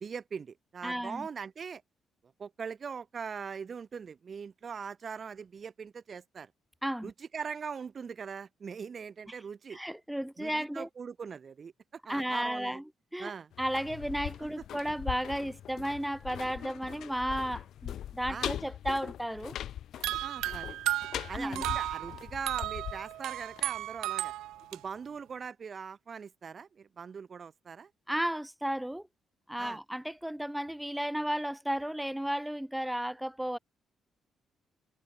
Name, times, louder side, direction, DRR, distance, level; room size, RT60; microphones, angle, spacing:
voice 1, 0.0-1.8 2.4-6.5 7.0-9.8 10.4-11.7 12.0-12.8 13.2-13.5 18.3-18.6 20.1-20.7 21.3-24.3 24.7-27.9 29.6-29.8, right 6 dB, 45° right, 0.6 m, -41 dB
voice 2, 0.8-1.3 6.8-7.1 9.7-10.9 12.1-13.3 13.6-19.5 21.3-21.6 28.1-29.1 29.5-33.6, equal, 5° right, 0.6 m, -34 dB
sound 1, 13.5-24.3 24.6-24.7, left 11 dB, 70° left, 1.7 m, -41 dB
sound 2, 20.0-24.8, right 15 dB, 90° right, 0.5 m, -34 dB
cardioid pair, 90°, 0 cm